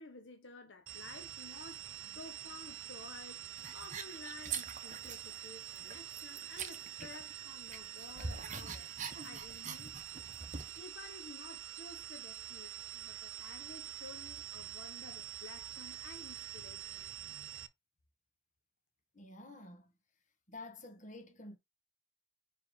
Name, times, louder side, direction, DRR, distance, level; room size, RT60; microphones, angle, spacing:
voice 1, 0.0-3.4 3.7-8.9 9.2-10.0 10.2-10.4 10.8-17.1, left 3 dB, 70° left, 1.0 m, -53 dB
sound 1, 0.9-17.7, right 10 dB, 90° right, 0.7 m, -46 dB
sound 2, 3.6-5.4 5.7-7.4 7.7-10.8, right 6 dB, 40° right, 0.9 m, -44 dB
voice 2, 19.1-19.9 20.5-21.6, left 2 dB, 40° left, 1.7 m, -50 dB
5.4 x 4.9 x 3.6 m
head